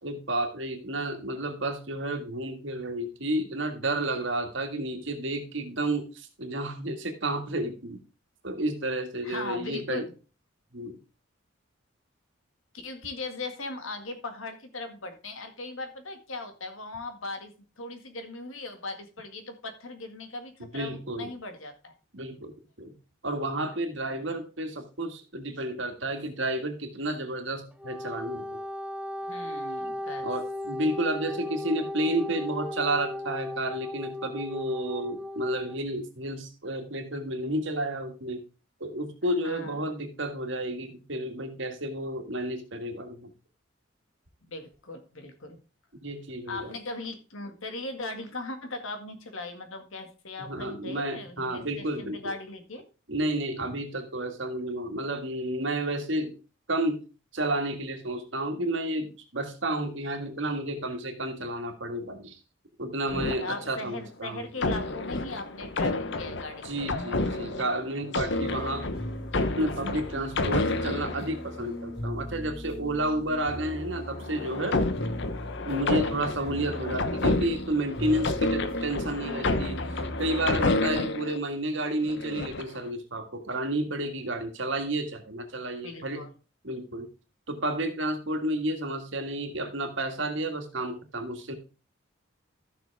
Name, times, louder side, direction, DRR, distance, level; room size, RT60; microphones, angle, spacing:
voice 1, 0.0-8.0 8.4-10.1 10.7-11.0 20.7-21.3 22.1-22.5 22.8-22.9 23.2-28.6 30.2-38.4 38.8-43.3 46.0-46.8 50.5-52.3 53.1-56.3 56.7-57.0 57.3-62.4 62.8-64.5 66.6-68.9 69.6-74.8 75.7-86.2 86.6-87.1 87.5-91.5, right 1 dB, 65° right, 5 dB, 1.9 m, -31 dB
voice 2, 9.2-10.1 12.7-21.9 24.1-24.4 29.2-30.3 39.4-39.9 44.4-45.6 46.5-52.8 63.4-66.7 76.4-76.7 80.9-81.3 85.8-86.3, left 2 dB, 80° left, 7 dB, 1.9 m, -39 dB
Wind instrument woodwind instrument, 27.7-35.8, left 1 dB, 5° right, 0.7 m, -36 dB
sound 1, 63.1-64.0 64.6-71.8 73.8-81.4 82.0-82.8, left 2 dB, 60° left, 0.9 m, -30 dB
sound 2, 68.3-80.8, equal, 30° left, 5.0 m, -39 dB
14.0 x 6.3 x 3.5 m, 0.33 s
head